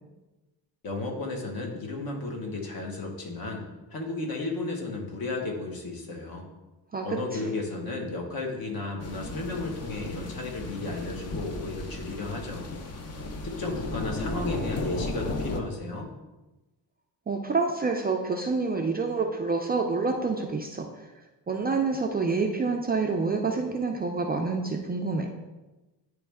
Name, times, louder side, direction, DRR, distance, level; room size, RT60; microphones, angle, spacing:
voice 1, 0.8-3.6 3.9-6.5 7.0-12.8 13.4-16.1, left 3 dB, 55° left, 1 dB, 1.3 m, -34 dB
voice 2, 6.9-7.6 17.3-20.9 21.5-25.3, right 4 dB, 25° right, 2 dB, 0.3 m, -27 dB
sound 1, 9.0-15.6, left 2 dB, 35° left, 0.6 m, -35 dB
9.4 x 3.1 x 3.5 m, 1.1 s
cardioid pair, 145°, 42 cm